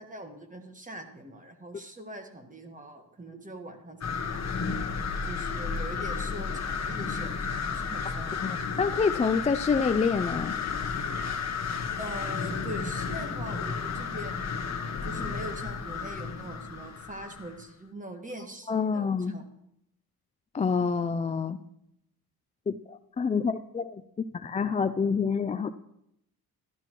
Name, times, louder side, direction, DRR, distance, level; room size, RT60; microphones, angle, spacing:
voice 1, 0.0-4.4 5.2-8.6 12.0-14.4 15.0-19.4, right 1 dB, 20° right, 1.5 m, -42 dB
sound 1, 4.0-17.6, left 5 dB, 40° left, 1.1 m, -33 dB
voice 2, 8.4-10.6 18.7-19.4 20.5-21.6 22.7-24.0 24.3-25.7, left 5 dB, 20° left, 0.3 m, -27 dB
13.5 x 11.5 x 3.0 m
cardioid pair, 90°, 40 cm